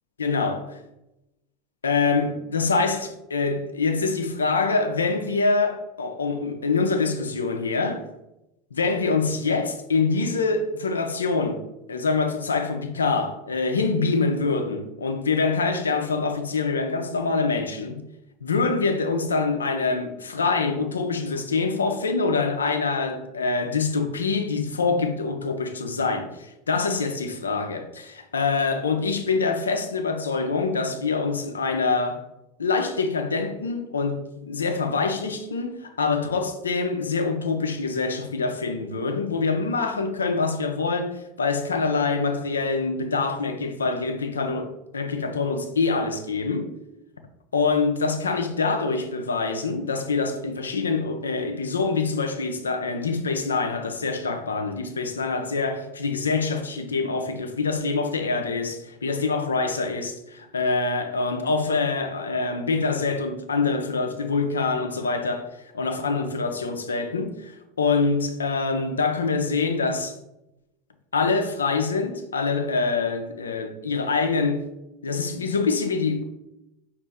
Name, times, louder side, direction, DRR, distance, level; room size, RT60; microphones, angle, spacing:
voice 1, 0.2-0.6 1.8-8.1 8.7-18.1 18.4-32.2 32.6-46.7 47.5-65.5 65.7-70.1 71.1-74.7 75.0-76.2, left 4 dB, 85° left, 0.4 m, -25 dB
5.0 x 2.5 x 3.4 m
hypercardioid pair, 80°, 0 cm